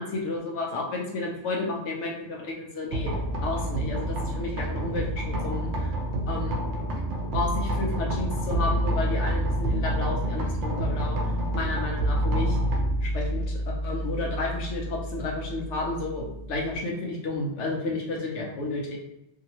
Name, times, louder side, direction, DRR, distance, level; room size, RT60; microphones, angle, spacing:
voice 1, 0.0-3.1 3.4-5.9 6.3-6.6 7.3-11.2 11.5-12.6 13.0-19.0, left 2 dB, 75° left, -1 dB, 1.0 m, -32 dB
sound 1, 2.9-16.8, right 1 dB, 80° right, 0.9 m, -28 dB
2.8 x 2.7 x 2.9 m, 0.86 s
omnidirectional pair, 1.2 m